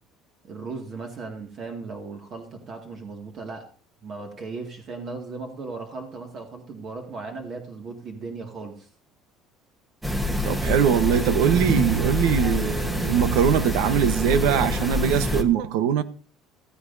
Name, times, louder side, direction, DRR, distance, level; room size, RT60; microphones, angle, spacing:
voice 1, 0.4-3.6 4.0-8.9, right 3 dB, 35° right, 2.1 m, -37 dB
sound 1, 10.0-15.4, left 1 dB, 5° right, 1.2 m, -26 dB
voice 2, 10.4-16.0, right 9 dB, 85° right, 1.1 m, -22 dB
16.0 x 14.5 x 2.7 m
cardioid pair, 160°, 0 cm